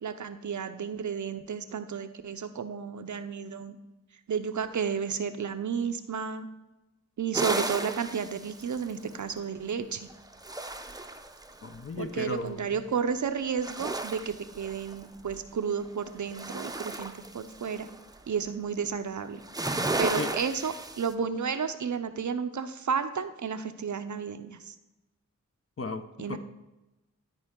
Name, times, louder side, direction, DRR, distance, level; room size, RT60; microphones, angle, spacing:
voice 1, 0.0-3.8 4.3-6.5 7.2-10.1 12.0-17.9 18.3-19.4 20.0-24.7 26.2-26.4, right 6 dB, 65° right, 9 dB, 0.6 m, -32 dB
sound 1, 7.3-9.3 10.1-11.8 13.5-15.3 15.8-18.2 19.3-21.1, right 2 dB, 10° right, 0.6 m, -34 dB
voice 2, 11.6-12.8 20.2-20.3 25.8-26.4, left 3 dB, 45° left, 8 dB, 0.7 m, -35 dB
12.5 x 4.5 x 3.7 m, 1.0 s
cardioid pair, 45°, 32 cm